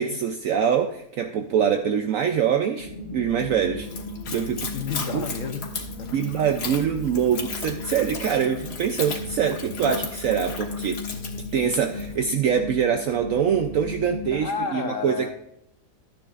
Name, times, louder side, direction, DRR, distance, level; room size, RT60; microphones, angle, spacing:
voice 1, 0.0-3.9 4.3-4.7 5.1-5.2 6.1-11.0 11.5-15.3, right 8 dB, 65° right, 6 dB, 0.9 m, -24 dB
sound 1, 2.8-14.5, left 2 dB, 35° left, 1.2 m, -36 dB
Splash splatter / Trickle dribble, 3.8-12.2, left 5 dB, 80° left, 1.9 m, -36 dB
voice 2, 4.7-6.1 14.3-15.3, left 5 dB, 55° left, 5 dB, 1.3 m, -31 dB
13.0 x 10.0 x 2.5 m, 0.79 s
omnidirectional pair, 1.7 m